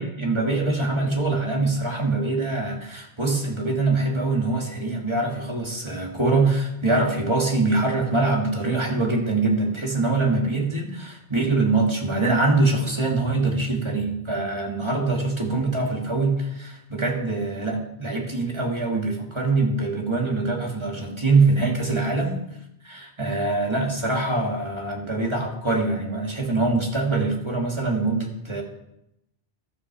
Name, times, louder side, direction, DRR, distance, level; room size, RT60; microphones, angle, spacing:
voice 1, 0.0-22.4 22.8-28.6, right 3 dB, 25° right, 0 dB, 2.4 m, -24 dB
13.0 x 12.5 x 4.8 m, 0.83 s
omnidirectional pair, 1.1 m